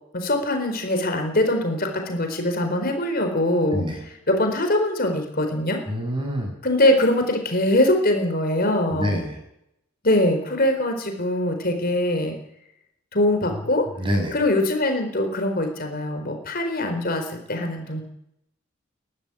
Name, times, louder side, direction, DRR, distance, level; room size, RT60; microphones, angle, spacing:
voice 1, 0.1-5.8 6.6-9.2 10.0-12.3 13.1-13.9 14.3-18.0, left 1 dB, 45° left, 5 dB, 4.4 m, -22 dB
voice 2, 5.9-6.5 8.9-9.4 14.0-14.3, equal, 25° right, 3 dB, 7.3 m, -26 dB
22.5 x 14.0 x 9.8 m, 0.78 s
head